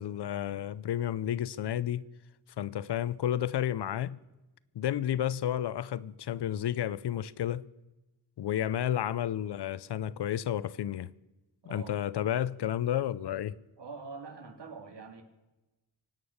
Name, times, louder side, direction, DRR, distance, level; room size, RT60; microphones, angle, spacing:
voice 1, 0.0-2.1 2.6-4.2 4.7-7.7 8.4-11.1 11.7-13.6, left 11 dB, 70° left, 0.6 m, -31 dB
voice 2, 11.6-11.9 13.8-15.2, right 4 dB, 70° right, 2.4 m, -44 dB
24.0 x 9.1 x 6.5 m
wide cardioid pair, 120°, 42 cm